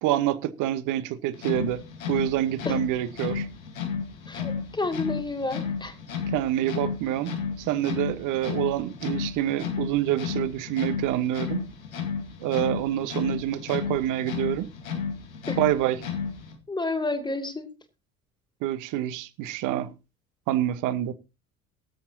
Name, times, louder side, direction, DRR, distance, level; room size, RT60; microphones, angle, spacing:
voice 1, 0.0-1.8 2.1-3.5 6.3-11.6 12.4-14.7 15.6-16.0 18.6-19.9 20.5-21.1, right 13 dB, 45° right, 1.2 m, -27 dB
sound 1, 1.3-16.6, left 6 dB, 75° left, 2.0 m, -33 dB
voice 2, 4.8-5.9 15.5-15.6 16.7-17.7, left 2 dB, 10° left, 2.4 m, -29 dB
22.5 x 7.6 x 2.8 m
figure-of-eight pair, 65°, 41 cm